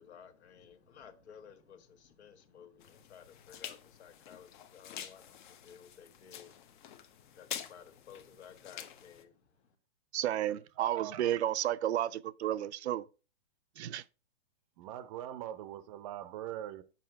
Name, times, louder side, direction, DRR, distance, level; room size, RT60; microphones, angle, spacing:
voice 1, 0.0-9.7, left 7 dB, 70° left, 1.7 m, -55 dB
sound 1, 2.8-9.2, left 10 dB, 45° left, 1.0 m, -47 dB
voice 2, 10.1-13.0 13.8-14.0, right 12 dB, 70° right, 0.6 m, -32 dB
voice 3, 10.8-11.5 14.8-16.8, right 11 dB, 30° right, 0.6 m, -42 dB
7.4 x 5.5 x 4.5 m
hypercardioid pair, 145°, 34 cm